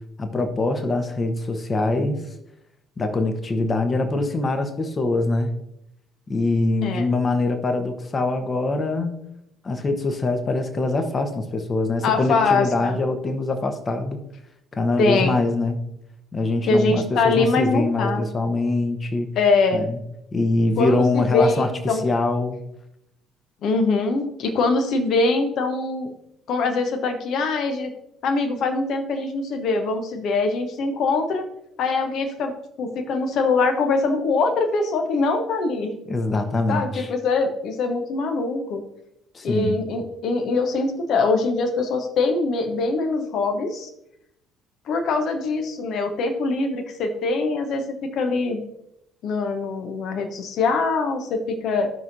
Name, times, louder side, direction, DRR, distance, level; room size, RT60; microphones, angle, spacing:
voice 1, 0.2-2.2 3.0-5.5 6.3-9.2 9.6-14.2 14.7-15.8 16.3-19.3 19.7-20.0 20.3-22.6 36.1-37.1 39.3-39.8, left 2 dB, 30° left, 7 dB, 1.1 m, -23 dB
voice 2, 12.0-13.0 15.0-15.4 16.7-18.2 19.4-19.9 20.8-22.0 23.6-26.1 26.5-27.9 28.2-31.5 31.8-32.5 32.8-35.9 36.7-38.8 39.4-43.9 44.9-48.6 49.2-51.9, left 3 dB, 50° left, 5 dB, 1.0 m, -23 dB
14.0 x 5.9 x 2.7 m, 0.83 s
figure-of-eight pair, 50°, 0 cm